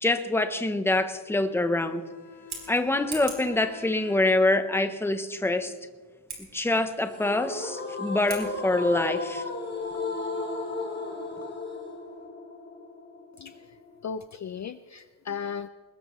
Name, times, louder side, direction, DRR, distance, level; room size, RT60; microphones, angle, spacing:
voice 1, 0.0-2.0 2.7-5.7 6.5-9.4, left 2 dB, 5° left, 8 dB, 0.7 m, -25 dB
Bowed string instrument, 1.6-4.6, left 6 dB, 80° left, 3.4 m, -48 dB
Scissors, 2.3-3.6 6.2-6.4 8.2-8.5, right 4 dB, 65° right, 4.2 m, -40 dB
sound 1, 7.1-14.1, left 3 dB, 25° left, 2.4 m, -35 dB
voice 2, 14.0-15.7, left 7 dB, 45° left, 11 dB, 0.4 m, -35 dB
21.5 x 20.0 x 3.1 m, 1.4 s
wide cardioid pair, 175°, 43 cm